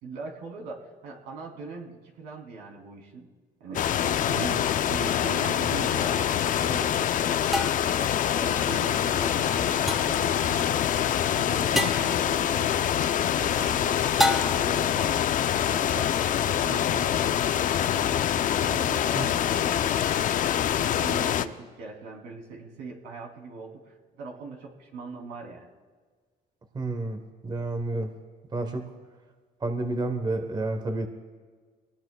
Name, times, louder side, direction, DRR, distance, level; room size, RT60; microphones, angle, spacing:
voice 1, 0.0-3.3 3.6-12.8 13.3-15.2 15.7-18.2 18.6-20.1 20.8-25.7, right 3 dB, 85° right, 0 dB, 3.0 m, -40 dB
sound 1, 3.7-21.5, left 10 dB, 50° left, 0.5 m, -25 dB
sound 2, 5.4-5.6 7.5-8.0 9.9-10.2 11.8-12.1 14.2-14.8, left 1 dB, ahead, 0.9 m, -28 dB
voice 2, 26.7-28.1 28.5-28.8 29.6-31.1, right 2 dB, 25° right, 6 dB, 1.1 m, -30 dB
23.0 x 19.0 x 2.3 m, 1.5 s
cardioid pair, 110°, 17 cm